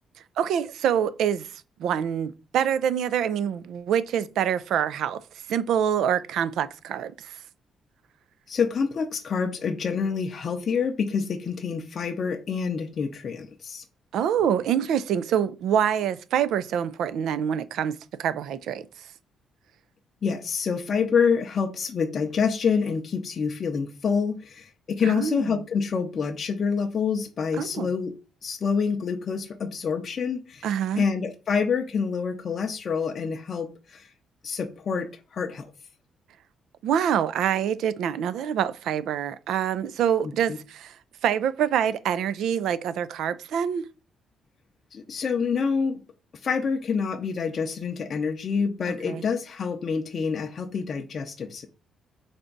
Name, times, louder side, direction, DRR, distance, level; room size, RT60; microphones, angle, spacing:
voice 1, 0.4-1.5 1.8-5.2 5.5-7.3 14.1-18.8 25.0-25.5 27.6-27.9 30.6-31.0 36.8-40.9 41.2-43.9 49.0-49.2, right 9 dB, 80° right, 0.4 m, -26 dB
voice 2, 8.5-13.8 20.2-30.7 31.0-34.1 34.4-35.7 40.5-40.6 44.9-46.0 46.4-51.7, left 5 dB, 50° left, 0.5 m, -27 dB
3.9 x 3.4 x 3.8 m
cardioid pair, 90°, 0 cm